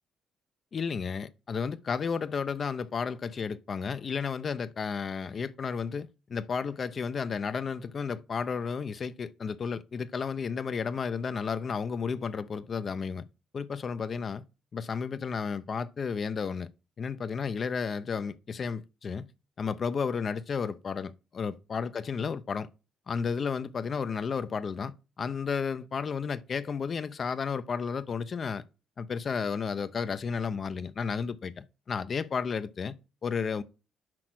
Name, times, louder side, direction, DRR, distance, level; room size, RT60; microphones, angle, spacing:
voice 1, 0.7-13.2 13.5-14.4 14.7-16.7 17.0-19.2 19.6-22.7 23.1-28.6 29.0-32.9 33.2-33.6, left 6 dB, 45° left, 0.6 m, -32 dB
6.1 x 4.9 x 6.0 m
cardioid pair, 90°, 0 cm